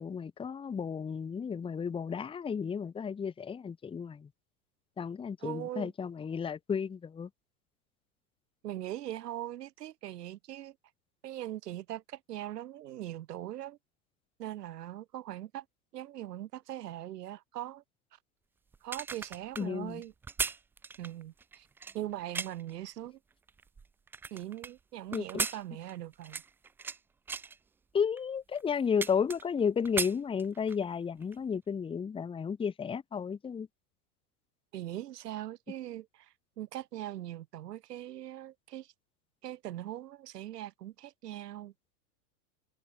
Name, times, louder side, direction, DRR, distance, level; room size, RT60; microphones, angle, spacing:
voice 1, 0.0-4.3 5.0-7.3 19.6-20.0 25.1-25.5 27.9-33.7, left 6 dB, 10° left, 1.0 m, -33 dB
voice 2, 5.4-5.9 8.6-10.8 11.2-13.8 14.4-15.7 15.9-17.8 18.8-20.1 21.0-21.7 21.9-23.2 24.3-26.4 34.7-38.9 39.4-41.7, right 13 dB, 80° right, 4.1 m, -41 dB
sound 1, 18.7-22.7 23.3-24.7 25.1-27.0 27.3-27.6 28.2-28.3 28.6-29.6 29.8-30.8 31.2-31.4, right 5 dB, 5° right, 0.3 m, -37 dB
supercardioid pair, 130°, 47 cm